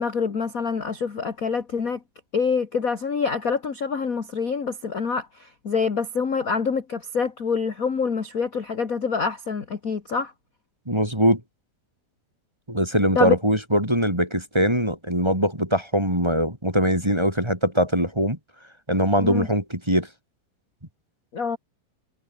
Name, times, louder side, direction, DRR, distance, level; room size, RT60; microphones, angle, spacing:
voice 1, 0.0-2.0 2.3-10.3 13.1-13.3 19.2-19.5 21.3-21.6, left 5 dB, 35° left, 1.5 m, -26 dB
voice 2, 10.9-11.4 12.7-18.4 18.9-20.1, equal, 5° right, 3.4 m, -22 dB
omnidirectional pair, 4.1 m